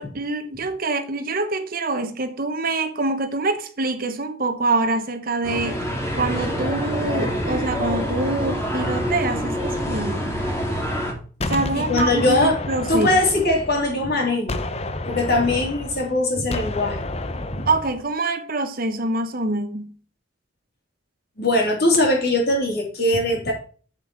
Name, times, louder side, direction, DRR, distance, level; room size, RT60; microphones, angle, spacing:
voice 1, 0.0-5.8 6.2-10.4 11.5-13.1 17.7-19.9, right 2 dB, 50° right, 1.1 m, -25 dB
sound 1, 5.4-11.1, equal, 15° left, 2.2 m, -26 dB
Gunshot gunfire, 11.4-14.1 14.5-18.0, left 2 dB, 35° left, 0.8 m, -30 dB
voice 2, 11.7-12.6 12.9-14.6 15.1-17.1 17.5-17.7 21.4-23.5, left 2 dB, 55° left, 3.6 m, -21 dB
7.6 x 7.4 x 4.5 m
head